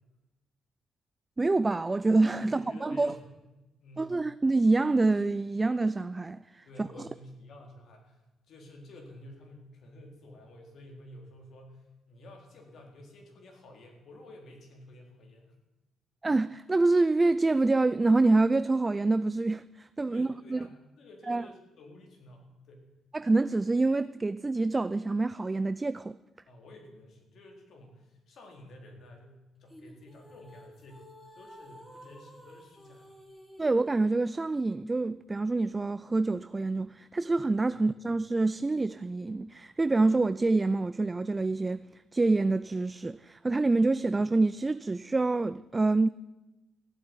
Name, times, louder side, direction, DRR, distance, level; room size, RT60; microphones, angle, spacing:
voice 1, 1.4-3.1 4.0-6.9 16.2-20.6 21.3-21.4 23.1-26.2 33.6-41.8 42.1-46.1, right 3 dB, 20° right, 0.4 m, -26 dB
voice 2, 2.4-3.4 3.8-4.1 6.7-8.2 8.5-15.5 20.0-22.9 26.5-31.1 31.3-33.2 37.7-37.9, left 1 dB, 65° left, 4.1 m, -51 dB
sound 1, 29.7-34.2, equal, 15° left, 4.2 m, -52 dB
14.5 x 8.7 x 9.7 m
cardioid pair, 90°, 0 cm